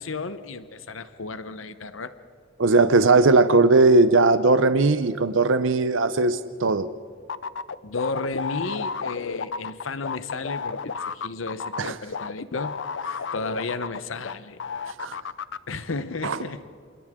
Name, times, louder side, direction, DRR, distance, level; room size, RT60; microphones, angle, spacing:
voice 1, 0.0-2.2 7.8-12.8 13.3-14.6 15.7-16.7, left 3 dB, 90° left, 12 dB, 1.0 m, -33 dB
voice 2, 2.6-6.9 11.8-11.9 15.0-15.2 16.2-16.4, right 3 dB, 75° right, 12 dB, 0.7 m, -18 dB
sound 1, 7.3-14.3 14.6-15.6, left 5 dB, 65° left, 0.6 m, -32 dB
29.5 x 27.5 x 3.7 m, 2.4 s
head